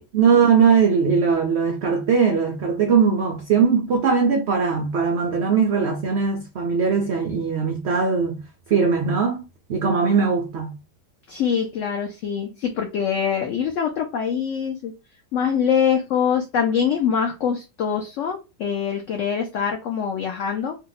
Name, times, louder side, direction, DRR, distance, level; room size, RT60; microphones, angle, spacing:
voice 1, 0.1-8.4 8.7-9.4 9.7-10.7, right 6 dB, 85° right, 0.5 m, -20 dB
voice 2, 11.3-14.9 15.3-20.8, left 7 dB, 70° left, 0.7 m, -24 dB
2.8 x 2.2 x 3.8 m
omnidirectional pair, 1.8 m